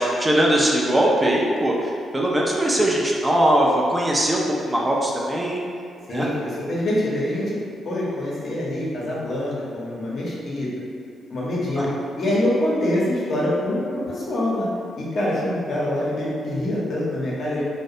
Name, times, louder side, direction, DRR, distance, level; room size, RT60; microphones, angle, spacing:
voice 1, 0.0-1.7 2.1-5.6 6.1-6.3 11.8-11.9, right 1 dB, 20° right, -3 dB, 0.4 m, -20 dB
voice 2, 6.1-7.5 7.8-10.7 11.3-11.9 12.2-14.7 15.0-17.6, left 1 dB, 60° left, -6 dB, 0.7 m, -25 dB
2.3 x 2.1 x 2.7 m, 2.3 s
supercardioid pair, 55°, 0 cm